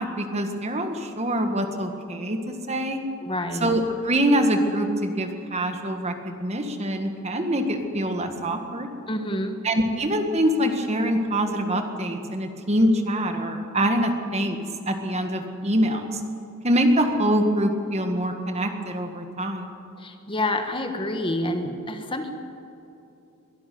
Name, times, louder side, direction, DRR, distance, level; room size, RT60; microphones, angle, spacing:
voice 1, 0.0-3.0 3.6-8.9 9.6-14.6 14.9-16.2 16.6-19.7, equal, 30° right, 5 dB, 1.8 m, -24 dB
voice 2, 3.2-3.7 9.1-9.6 20.0-22.3, left 1 dB, 25° left, 6 dB, 1.5 m, -28 dB
23.0 x 12.5 x 9.5 m, 2.8 s
head